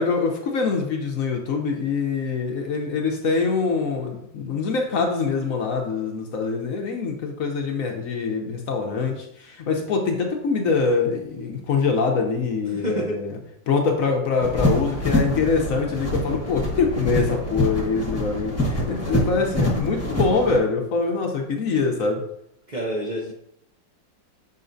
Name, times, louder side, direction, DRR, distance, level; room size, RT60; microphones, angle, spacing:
voice 1, 0.0-13.4 13.7-22.2, left 4 dB, 60° left, 2 dB, 1.0 m, -24 dB
voice 2, 12.7-13.2 22.7-23.3, right 1 dB, 80° right, -2 dB, 0.4 m, -28 dB
sound 1, 14.4-20.6, left 1 dB, 10° left, 1.0 m, -25 dB
6.7 x 5.7 x 2.6 m, 0.76 s
omnidirectional pair, 2.0 m